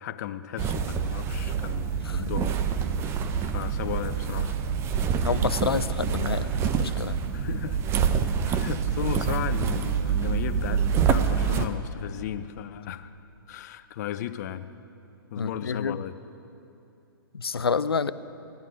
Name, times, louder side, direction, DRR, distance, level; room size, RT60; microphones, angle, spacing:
voice 1, 0.0-2.6 3.0-4.6 7.3-7.8 8.4-13.1 13.5-14.7 15.3-16.2, left 11 dB, 45° left, 12 dB, 0.6 m, -35 dB
sound 1, 0.6-11.7, right 7 dB, 20° right, 0.6 m, -26 dB
voice 2, 5.2-7.2 15.4-16.0 17.3-18.1, left 5 dB, 90° left, 15 dB, 0.5 m, -28 dB
17.0 x 11.0 x 5.1 m, 2.7 s
hypercardioid pair, 130°, 12 cm